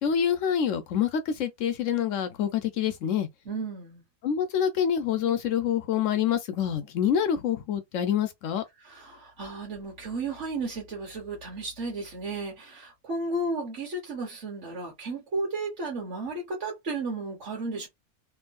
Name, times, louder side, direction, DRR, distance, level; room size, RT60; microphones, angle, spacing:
voice 1, 0.0-3.3 4.2-8.6, left 8 dB, 70° left, 1.0 m, -26 dB
voice 2, 3.4-4.0 8.8-17.9, right 2 dB, 60° right, 1.5 m, -33 dB
3.0 x 2.6 x 2.2 m
omnidirectional pair, 1.4 m